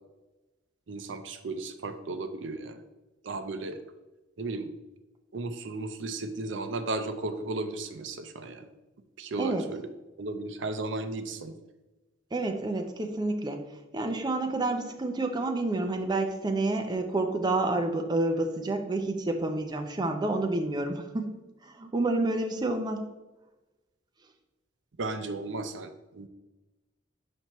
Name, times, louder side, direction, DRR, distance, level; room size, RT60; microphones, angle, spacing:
voice 1, 0.9-2.8 3.2-3.8 4.4-4.7 5.3-8.6 9.2-9.8 10.2-11.5 25.0-26.3, right 2 dB, 70° right, 9 dB, 0.5 m, -35 dB
voice 2, 12.3-13.6 13.9-21.3 21.6-23.0, right 2 dB, 20° right, 4 dB, 0.5 m, -29 dB
6.1 x 5.4 x 3.0 m, 1.1 s
head